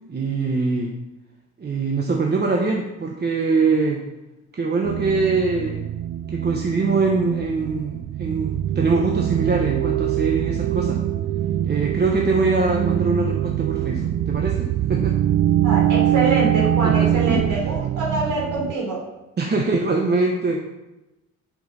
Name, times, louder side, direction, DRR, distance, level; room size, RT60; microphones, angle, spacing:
voice 1, 0.1-0.9 1.6-4.0 4.5-5.8 6.3-11.0 11.6-15.2 16.8-17.4 19.4-20.6, right 3 dB, 35° right, 1 dB, 1.2 m, -23 dB
sound 1, 4.8-18.7, right 11 dB, 50° right, 0.5 m, -23 dB
voice 2, 15.6-19.0, right 3 dB, 85° right, -3 dB, 3.4 m, -25 dB
7.8 x 6.5 x 5.5 m, 1.0 s
cardioid pair, 90°, 30 cm